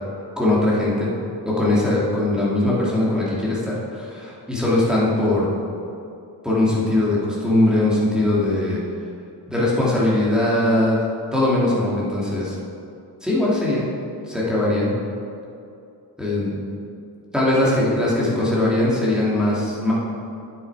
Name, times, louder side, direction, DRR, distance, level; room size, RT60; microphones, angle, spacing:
voice 1, 0.4-1.1 1.4-5.5 6.4-8.8 9.5-11.0 11.3-12.6 13.2-13.9 14.3-15.0 16.2-16.6 17.3-19.9, left 1 dB, ahead, -7 dB, 2.3 m, -20 dB
9.1 x 7.3 x 4.7 m, 2.6 s
wide cardioid pair, 120°, 42 cm